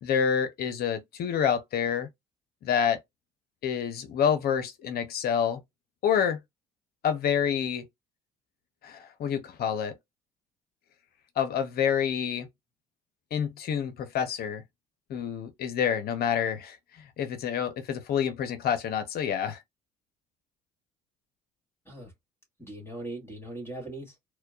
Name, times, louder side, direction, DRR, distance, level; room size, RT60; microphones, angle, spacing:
voice 1, 0.0-2.1 2.6-3.0 3.6-5.6 6.0-6.4 7.0-7.8 8.8-9.9 11.4-12.5 13.3-14.6 15.1-16.8 17.2-19.6, left 8 dB, 55° left, 0.7 m, -27 dB
voice 2, 22.6-24.3, right 1 dB, 10° left, 2.1 m, -40 dB
4.3 x 2.2 x 2.4 m
hypercardioid pair, 50°, 19 cm